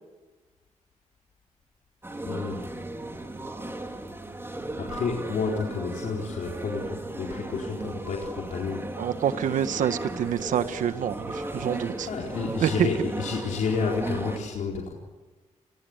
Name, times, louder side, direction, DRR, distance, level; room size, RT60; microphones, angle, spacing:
sound 1, 2.0-14.4, right 2 dB, 20° right, 4.5 m, -36 dB
voice 1, 2.3-2.7 4.8-9.0 12.1-14.9, left 5 dB, 80° left, -1 dB, 4.3 m, -30 dB
voice 2, 9.0-12.1 12.5-12.9, right 9 dB, 85° right, 11 dB, 1.5 m, -27 dB
29.5 x 21.5 x 8.1 m, 1.3 s
cardioid pair, 75°, 13 cm